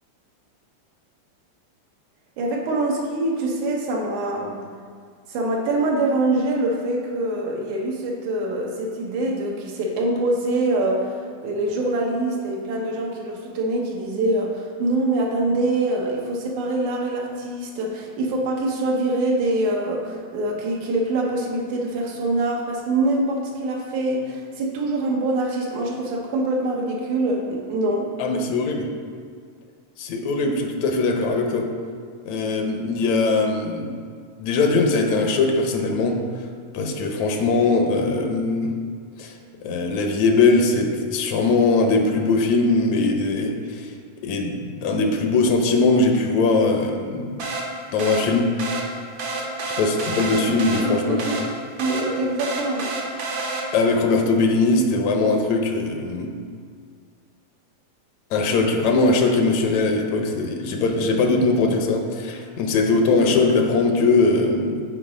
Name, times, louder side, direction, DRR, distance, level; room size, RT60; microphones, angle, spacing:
voice 1, 2.4-4.6 5.3-11.1 11.4-28.1 50.5-51.5 51.8-52.9, right 2 dB, 80° right, 0 dB, 2.5 m, -24 dB
voice 2, 28.2-28.9 30.0-31.7 32.3-34.0 34.4-36.2 36.7-38.7 39.2-39.3 39.6-43.9 44.2-47.4 47.9-48.5 49.4-49.5 49.8-51.3 53.7-56.3 58.3-64.8, left 3 dB, 75° left, 3 dB, 1.9 m, -21 dB
sound 1, 47.4-54.0, right 2 dB, 60° right, 1.3 m, -30 dB
10.0 x 4.7 x 4.9 m, 2.1 s
omnidirectional pair, 3.4 m